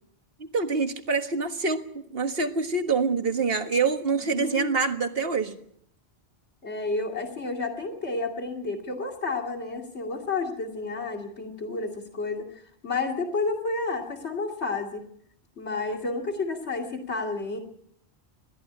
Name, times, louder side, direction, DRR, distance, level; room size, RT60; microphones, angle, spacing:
voice 1, 0.4-5.6, right 4 dB, 60° right, 7 dB, 1.8 m, -26 dB
voice 2, 4.2-4.7 6.6-15.0 15.6-17.6, left 3 dB, 85° left, 3 dB, 2.8 m, -31 dB
21.5 x 14.0 x 9.8 m, 0.70 s
omnidirectional pair, 1.1 m